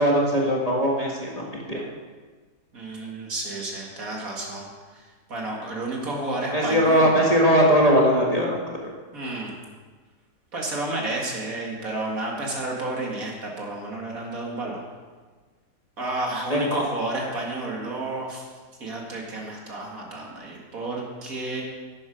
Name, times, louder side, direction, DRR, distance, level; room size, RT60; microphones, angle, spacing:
voice 1, 0.0-1.8 6.5-8.6 16.5-16.8, equal, 25° left, -3 dB, 1.7 m, -20 dB
voice 2, 2.7-5.0 5.3-7.2 9.1-9.5 10.5-14.8 16.0-18.5 18.8-21.6, right 2 dB, 60° right, -2 dB, 2.4 m, -31 dB
11.5 x 9.5 x 5.1 m, 1.4 s
omnidirectional pair, 1.7 m